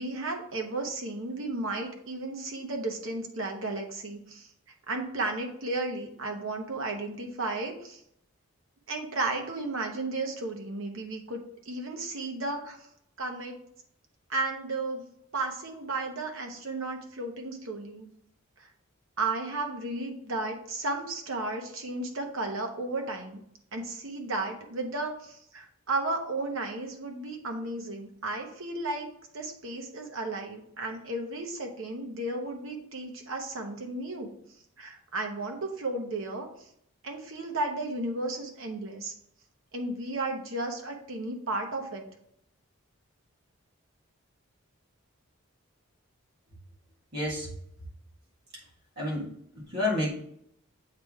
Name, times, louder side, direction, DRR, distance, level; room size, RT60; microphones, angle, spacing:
voice 1, 0.0-4.5 4.9-8.0 8.9-11.4 11.6-12.8 13.2-13.6 14.3-15.0 15.3-18.1 18.6-18.7 19.2-23.4 23.7-29.1 29.3-34.3 34.8-36.5 37.0-39.1 39.7-42.0, right 2 dB, 70° right, 3 dB, 1.0 m, -34 dB
voice 2, 47.1-47.5 49.0-49.3 49.6-50.1, left 2 dB, 50° right, -5 dB, 1.6 m, -29 dB
7.9 x 3.4 x 3.5 m, 0.71 s
head